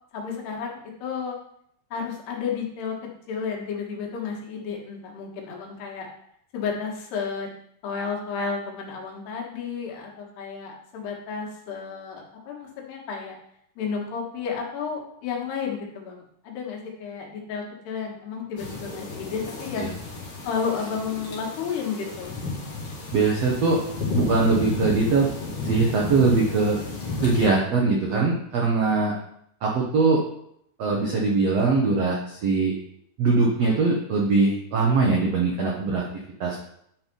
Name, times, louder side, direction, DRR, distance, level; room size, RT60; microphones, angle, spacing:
voice 1, 0.1-1.4 1.9-3.0 3.3-6.1 6.5-7.5 7.8-13.4 13.8-19.9 20.4-22.3, left 6 dB, 80° left, -1 dB, 3.7 m, -32 dB
sound 1, 18.6-27.5, left 3 dB, 55° left, 3.4 m, -32 dB
voice 2, 23.1-23.8 24.1-25.3 25.6-26.8 27.2-29.2 29.6-30.2 30.8-32.7 33.2-36.0 36.4-36.6, right 4 dB, 75° right, -2 dB, 1.5 m, -21 dB
10.0 x 4.6 x 5.3 m, 0.72 s
omnidirectional pair, 4.7 m